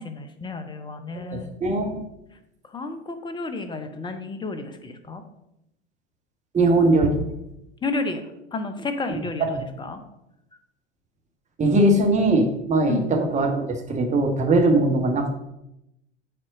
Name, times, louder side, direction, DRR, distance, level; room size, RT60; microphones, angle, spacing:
voice 1, 0.0-1.5 2.7-5.2 7.8-8.2 8.5-10.0 12.9-13.1, left 3 dB, 10° left, 7 dB, 0.9 m, -31 dB
voice 2, 1.3-2.0 6.5-7.2 9.5-9.6 11.6-15.3, right 2 dB, 20° right, 2 dB, 1.6 m, -20 dB
7.6 x 4.2 x 6.1 m, 0.86 s
figure-of-eight pair, 85°, 37 cm